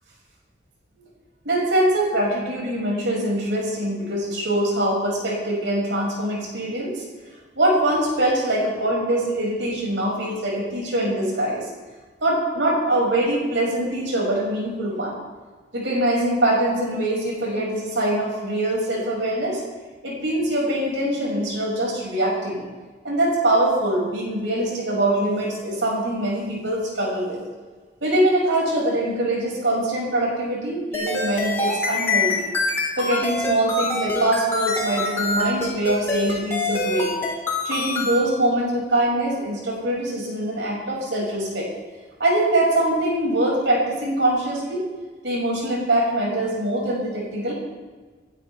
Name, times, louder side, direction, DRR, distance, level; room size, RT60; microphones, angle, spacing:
voice 1, 1.4-7.0 7.6-11.6 12.2-15.2 15.7-19.6 20.0-22.6 23.0-27.4 28.0-32.4 33.0-37.1 37.6-41.7 42.2-44.8 45.2-47.5, right 1 dB, 90° right, -3 dB, 6.4 m, -23 dB
sound 1, 30.9-38.2, left 2 dB, 15° left, 4.2 m, -25 dB
27.5 x 12.0 x 3.5 m, 1.4 s
head